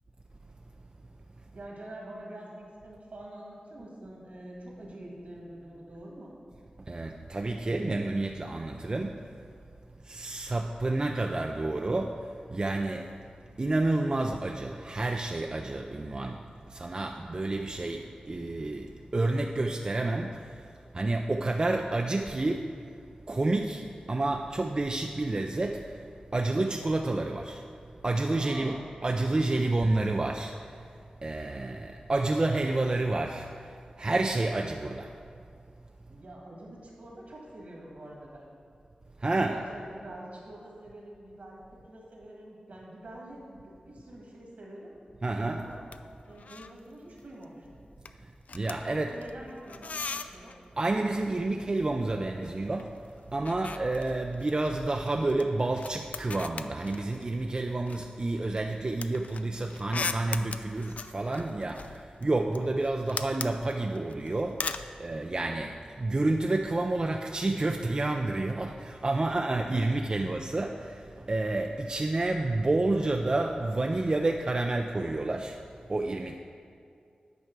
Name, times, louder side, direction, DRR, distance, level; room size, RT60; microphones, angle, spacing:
voice 1, 1.5-6.3 28.4-28.8 36.1-38.5 39.3-45.0 45.5-45.8 46.3-47.7 48.9-50.6, right 1 dB, 70° right, -2 dB, 2.0 m, -46 dB
voice 2, 6.9-9.4 10.0-13.2 13.6-22.8 23.3-26.1 26.3-30.9 31.2-35.2 39.2-39.6 45.2-45.7 48.2-49.1 50.8-75.6 75.9-76.4, right 2 dB, 35° right, 3 dB, 0.4 m, -30 dB
sound 1, 45.7-46.0 46.3-46.8 47.1-47.4 47.7-50.6 51.8-52.9 53.1-57.4 57.9-64.9, left 4 dB, 65° left, 0.3 m, -40 dB
9.5 x 4.6 x 6.0 m, 2.4 s
wide cardioid pair, 75°, 3 cm